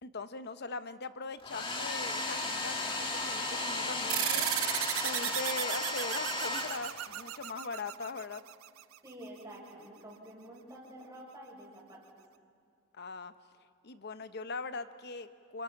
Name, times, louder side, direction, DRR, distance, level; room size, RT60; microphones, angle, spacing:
voice 1, 0.0-4.4 5.0-8.4 12.9-13.3 13.8-15.6, left 3 dB, 50° left, 11 dB, 0.8 m, -41 dB
Domestic sounds home sounds, 1.4-7.3, left 2 dB, 25° left, 1.9 m, -35 dB
sound 1, 4.1-9.0, right 14 dB, 70° right, 0.5 m, -35 dB
voice 2, 9.0-12.0, right 1 dB, 15° right, -3 dB, 5.6 m, -49 dB
28.5 x 23.5 x 5.9 m, 2.2 s
head